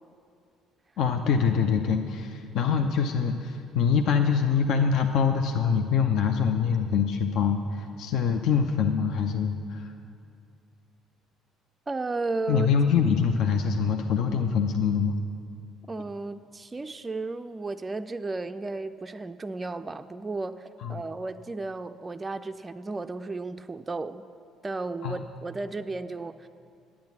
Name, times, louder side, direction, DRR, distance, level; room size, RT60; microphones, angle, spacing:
voice 1, 1.0-9.9 12.5-15.2 20.8-20.9 25.0-25.2, left 6 dB, 55° left, 6 dB, 0.5 m, -24 dB
voice 2, 11.9-12.7 15.9-24.2 24.6-26.5, right 3 dB, 20° right, 8 dB, 0.3 m, -34 dB
10.5 x 8.4 x 7.2 m, 2.4 s
figure-of-eight pair, 50°, 0 cm